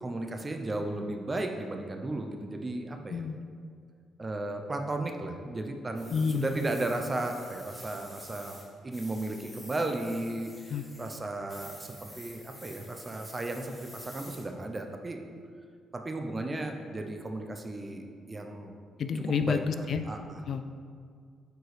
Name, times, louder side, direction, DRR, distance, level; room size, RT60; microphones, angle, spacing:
voice 1, 0.0-3.2 4.2-8.6 8.8-10.7 11.0-15.2 15.9-18.7 19.5-20.4, right 2 dB, 25° right, 4 dB, 0.6 m, -35 dB
sound 1, 5.9-8.6 8.9-11.2 11.5-14.4, left 1 dB, 10° left, 1.5 m, -50 dB
voice 2, 6.1-6.6 10.7-10.8 19.0-20.0 20.5-20.8, left 6 dB, 55° left, 9 dB, 0.3 m, -29 dB
8.0 x 4.5 x 3.3 m, 2.1 s
cardioid pair, 90°, 0 cm